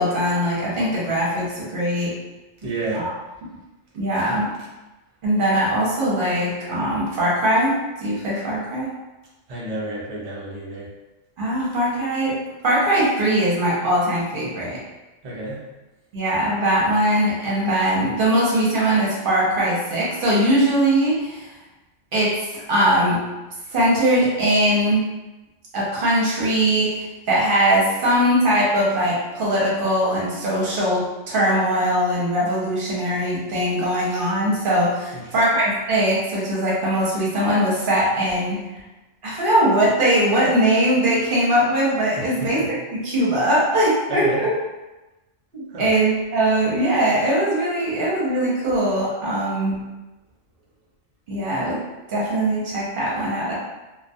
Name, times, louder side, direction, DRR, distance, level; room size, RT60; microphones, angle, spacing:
voice 1, 0.0-2.2 2.9-3.1 3.9-4.5 5.2-8.9 11.4-14.8 16.1-21.5 22.1-23.2 23.7-25.0 25.7-38.6 39.2-42.6 43.0-44.5 45.5-49.8 51.3-51.8 52.1-53.5, right 1 dB, 50° right, -6 dB, 0.7 m, -21 dB
voice 2, 2.6-3.1 4.2-4.3 9.5-10.9 15.2-15.6 35.1-35.2 42.2-42.7 44.1-44.4 45.7-45.9, right 1 dB, 70° right, -5 dB, 0.3 m, -30 dB
2.2 x 2.2 x 2.6 m, 1.1 s
omnidirectional pair, 1.4 m